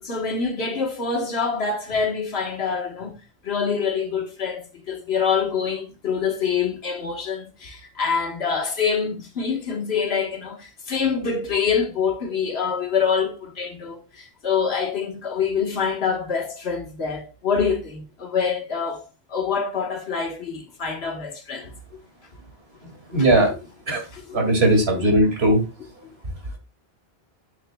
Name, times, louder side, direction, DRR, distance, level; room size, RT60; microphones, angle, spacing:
voice 1, 0.0-21.7 23.1-23.3 24.1-24.8, left 6 dB, 90° left, 1.6 m, -26 dB
voice 2, 22.8-23.6 23.9-24.0 24.3-25.6, right 1 dB, 85° right, 2.5 m, -19 dB
8.0 x 7.1 x 2.2 m
omnidirectional pair, 1.0 m